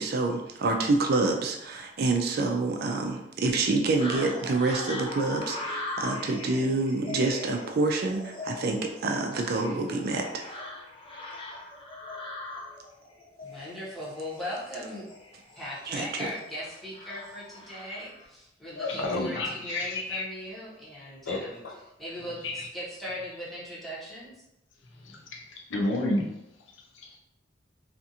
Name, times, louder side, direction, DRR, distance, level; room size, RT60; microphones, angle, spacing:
voice 1, 0.0-10.4 15.9-16.1, right 3 dB, 55° right, 3 dB, 0.4 m, -27 dB
sound 1, 4.0-18.2, left 2 dB, 30° left, 0.5 m, -40 dB
voice 2, 13.4-15.1 15.6-21.6 22.0-24.4, equal, ahead, -9 dB, 0.9 m, -38 dB
voice 3, 18.8-20.2 21.3-21.8 22.4-22.7 25.0-26.3 26.9-27.2, left 2 dB, 90° left, 1 dB, 0.6 m, -31 dB
2.5 x 2.4 x 2.7 m, 0.85 s
head